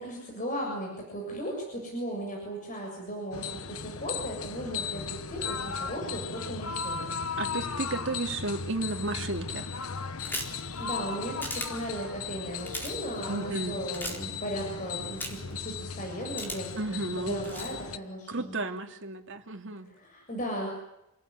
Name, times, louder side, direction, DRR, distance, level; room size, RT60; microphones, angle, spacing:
voice 1, 0.0-7.1 10.5-18.5 20.0-20.7, equal, 35° left, 0 dB, 7.4 m, -36 dB
sound 1, 3.3-18.0, left 5 dB, 75° left, 1.3 m, -37 dB
voice 2, 7.4-9.7 13.3-13.8 16.8-17.7 18.3-19.9, right 2 dB, 55° right, 4 dB, 2.7 m, -33 dB
sound 2, 10.2-10.6 11.4-11.7 12.6-12.9 13.9-14.2 15.2-15.5 16.4-16.8 17.4-17.7, equal, 10° left, 4.1 m, -35 dB
28.5 x 19.5 x 9.6 m, 0.87 s
head